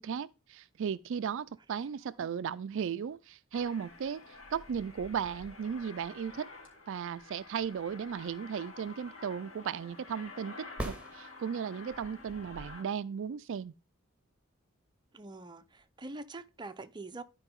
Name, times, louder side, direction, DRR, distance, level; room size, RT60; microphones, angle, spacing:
voice 1, 0.0-4.2 4.5-6.5 6.9-13.7, right 7 dB, 65° right, 0.4 m, -36 dB
Aircraft, 3.5-12.8, left 3 dB, 75° left, 3.1 m, -50 dB
sound 1, 10.8-11.9 15.8-15.9, right 1 dB, 5° right, 1.7 m, -40 dB
voice 2, 15.1-17.2, right 2 dB, 20° right, 0.6 m, -44 dB
12.0 x 4.9 x 3.6 m
head